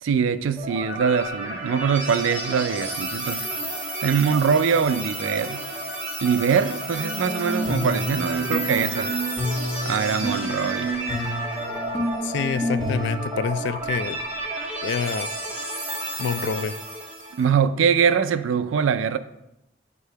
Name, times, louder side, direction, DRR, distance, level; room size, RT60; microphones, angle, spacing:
voice 1, 0.0-3.5 4.0-5.6 6.2-9.1 9.8-10.9 17.3-19.2, right 6 dB, 85° right, 0.4 m, -23 dB
sound 1, 0.6-17.4, right 1 dB, 10° right, 0.8 m, -32 dB
sound 2, 6.9-13.4, equal, 20° left, 1.4 m, -29 dB
voice 2, 12.2-14.2 14.8-15.3 16.2-16.8, left 6 dB, 60° left, 0.3 m, -27 dB
8.2 x 2.8 x 4.5 m
head